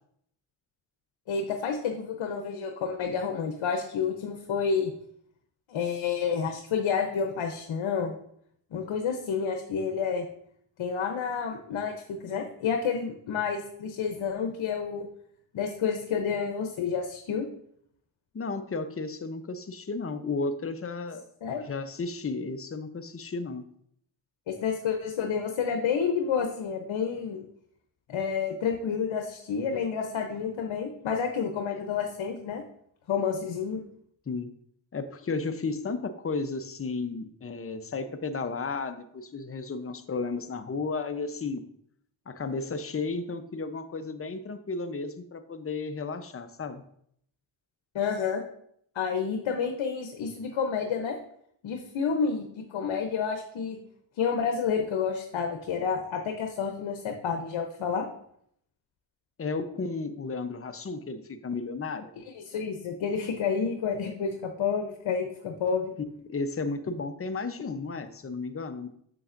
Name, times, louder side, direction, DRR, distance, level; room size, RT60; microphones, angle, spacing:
voice 1, 1.3-4.9 5.7-8.1 8.7-10.3 10.8-15.1 15.5-17.5 21.4-21.7 24.5-27.4 28.1-32.6 33.1-33.8 47.9-48.4 48.9-51.2 51.6-53.8 54.2-58.1 62.3-65.9, left 6 dB, 70° left, 4 dB, 0.9 m, -29 dB
voice 2, 18.3-21.2 21.6-23.7 34.3-34.5 34.9-41.6 42.3-46.8 59.4-62.1 66.2-68.9, left 4 dB, 30° left, 9 dB, 0.8 m, -33 dB
7.0 x 6.8 x 2.6 m, 0.69 s
supercardioid pair, 50°, 48 cm